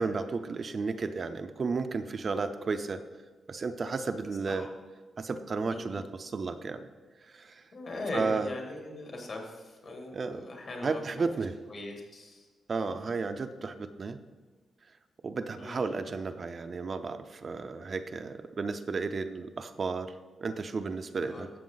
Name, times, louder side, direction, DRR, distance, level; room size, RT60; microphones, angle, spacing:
voice 1, 0.0-3.0 3.5-4.7 5.2-6.9 7.3-7.6 8.1-8.5 10.1-10.5 10.8-11.6 12.7-14.2 15.2-20.1 20.4-21.5, right 4 dB, 40° right, 8 dB, 0.5 m, -33 dB
voice 2, 7.7-11.2 11.7-12.5 15.6-15.9 21.2-21.4, left 2 dB, 50° left, 1 dB, 2.5 m, -40 dB
12.5 x 7.9 x 4.0 m, 1.3 s
cardioid pair, 120°, 0 cm